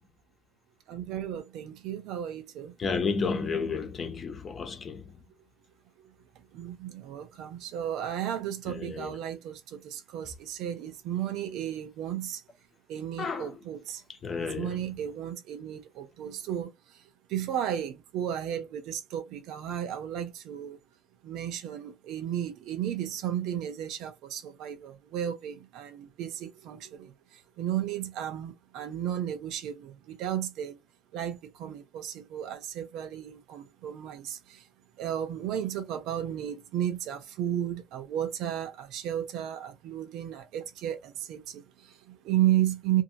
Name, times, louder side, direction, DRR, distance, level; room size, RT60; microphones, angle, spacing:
voice 1, 0.9-2.7 6.5-12.4 12.9-14.0 14.4-16.7 17.3-20.8 21.2-27.1 27.6-30.8 31.1-34.6 35.0-43.0, right 11 dB, 75° right, 0.8 m, -33 dB
voice 2, 2.8-5.2 8.7-9.2 13.2-13.6 14.1-15.0, left 5 dB, 30° left, 0.8 m, -32 dB
2.7 x 2.7 x 2.8 m
cardioid pair, 140°, 0 cm